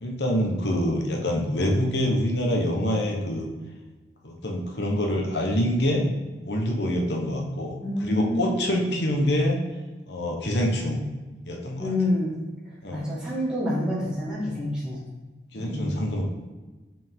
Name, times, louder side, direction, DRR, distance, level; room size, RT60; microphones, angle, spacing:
voice 1, 0.0-3.5 4.2-6.0 6.4-9.6 10.1-11.0 11.5-11.9 12.8-13.1 15.5-16.2, equal, 85° left, 1 dB, 1.1 m, -26 dB
voice 2, 7.8-8.9 11.8-12.4 12.9-15.0 15.5-16.1, left 1 dB, 5° right, -8 dB, 2.0 m, -27 dB
5.5 x 5.2 x 3.7 m, 1.2 s
head